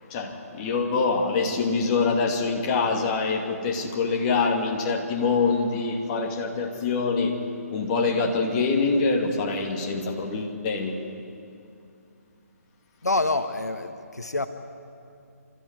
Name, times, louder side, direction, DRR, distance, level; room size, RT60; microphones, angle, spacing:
voice 1, 0.1-7.4 7.7-11.0, left 4 dB, 30° left, 2 dB, 2.5 m, -25 dB
voice 2, 13.0-14.5, left 2 dB, 85° left, 9 dB, 1.4 m, -26 dB
28.5 x 13.5 x 9.7 m, 2.5 s
figure-of-eight pair, 145°, 9 cm